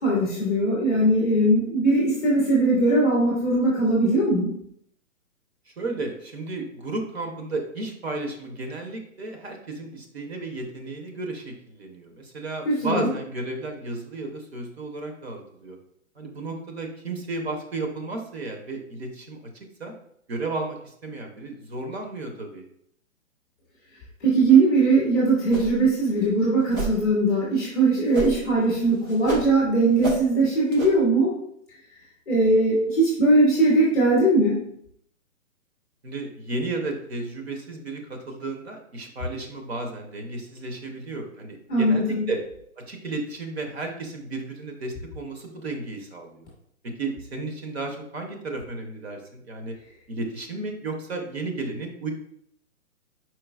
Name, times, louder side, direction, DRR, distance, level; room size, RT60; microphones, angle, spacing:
voice 1, 0.0-4.5 12.6-13.1 24.2-31.3 32.3-34.6 41.7-42.2, right 2 dB, 5° left, -7 dB, 0.7 m, -20 dB
voice 2, 5.8-15.8 16.2-19.4 19.8-19.9 20.3-22.6 36.0-42.4 42.8-46.4 46.8-49.7 50.1-52.1, right 2 dB, 45° right, 3 dB, 0.9 m, -33 dB
sound 1, 25.5-25.9 26.2-26.3 26.7-27.0 28.1-28.5 28.8-29.5 30.0-30.2 30.7-30.9, right 3 dB, 80° right, 1.4 m, -30 dB
4.6 x 4.5 x 2.3 m, 0.71 s
hypercardioid pair, 165°, 42 cm